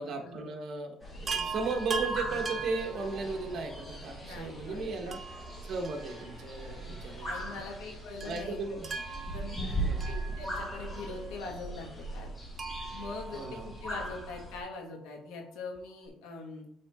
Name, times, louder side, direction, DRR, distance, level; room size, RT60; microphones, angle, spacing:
voice 1, 0.0-7.6 8.2-8.9 9.7-10.1 13.3-13.7, right 4 dB, 50° right, 3 dB, 1.4 m, -36 dB
sound 1, 1.0-14.6, right 1 dB, 20° left, 2.5 m, -39 dB
Chime, 1.3-3.7 5.1-6.6 6.9-7.0 8.2-10.9 12.6-14.2 15.8-15.9 16.1-16.2, right 4 dB, 25° right, 0.9 m, -40 dB
voice 2, 4.2-5.2 6.8-6.9 7.2-8.8 9.3-9.6 10.1-12.3 12.9-16.6, left 3 dB, 85° left, 1 dB, 1.9 m, -43 dB
8.6 x 3.8 x 3.7 m, 0.70 s
cardioid pair, 125°, 0 cm